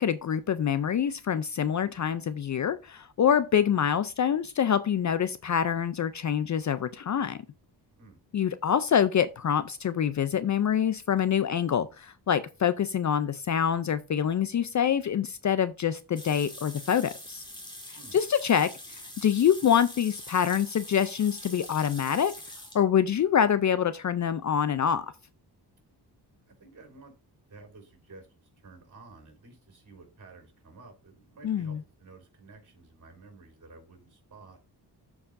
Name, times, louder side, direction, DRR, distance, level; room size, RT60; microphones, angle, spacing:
voice 1, 0.0-7.4 8.3-17.4 17.9-22.3 22.7-25.1 31.4-31.8, left 8 dB, 45° left, 0.4 m, -26 dB
sound 1, 16.2-22.8, left 1 dB, 10° left, 2.0 m, -44 dB
voice 2, 26.5-27.1 27.5-34.6, right 3 dB, 45° right, 3.7 m, -52 dB
14.0 x 4.8 x 2.5 m
wide cardioid pair, 120°, 42 cm